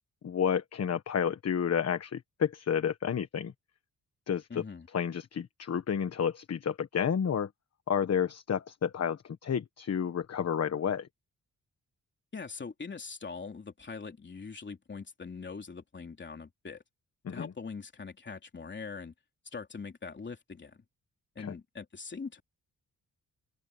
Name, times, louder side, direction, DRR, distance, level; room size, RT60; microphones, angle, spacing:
voice 1, 0.2-3.5 4.3-4.6 4.9-7.5 7.9-11.1 17.2-17.5 21.4-21.5, left 7 dB, 50° left, 1.3 m, -30 dB
voice 2, 4.5-4.9 12.3-16.8 17.3-19.1 19.5-20.8 21.3-22.4, left 5 dB, 35° left, 3.3 m, -42 dB
open air
cardioid pair, 100°, 33 cm